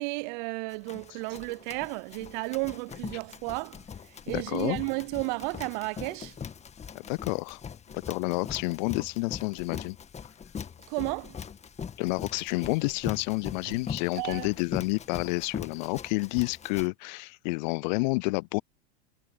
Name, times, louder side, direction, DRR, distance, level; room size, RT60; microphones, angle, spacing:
voice 1, 0.0-6.4 10.9-11.4 13.7-13.8 14.1-14.5, right 31 dB, 45° right, 0.6 m, -33 dB
Run, 0.7-16.9, left 7 dB, 20° left, 1.8 m, -41 dB
voice 2, 4.3-4.8 6.9-7.6 7.9-10.0 12.0-18.6, left 27 dB, 45° left, 0.4 m, -29 dB
hypercardioid pair, 95°, 33 cm